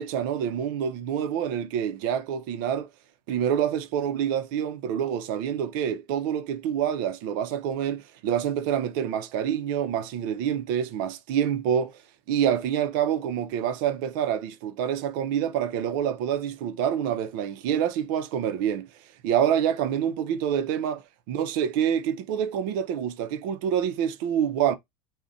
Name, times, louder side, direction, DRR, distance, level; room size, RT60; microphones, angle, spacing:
voice 1, 0.0-2.9 3.3-11.9 12.3-18.9 19.2-21.0 21.3-24.7, right 9 dB, 60° right, 0.5 m, -27 dB
2.4 x 2.2 x 3.8 m
supercardioid pair, 140°, 12 cm